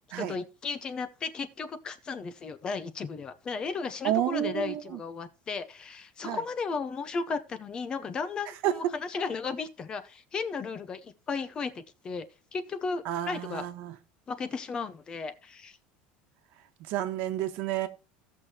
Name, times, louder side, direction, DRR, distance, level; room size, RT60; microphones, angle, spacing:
voice 1, 0.2-12.2 12.5-13.7 14.3-15.8, left 4 dB, 20° left, 0.7 m, -35 dB
voice 2, 4.0-5.0 6.2-6.4 8.6-8.7 13.0-14.0 16.9-17.9, right 12 dB, 55° right, 1.2 m, -30 dB
16.5 x 6.4 x 2.9 m
cardioid pair, 165°, 4 cm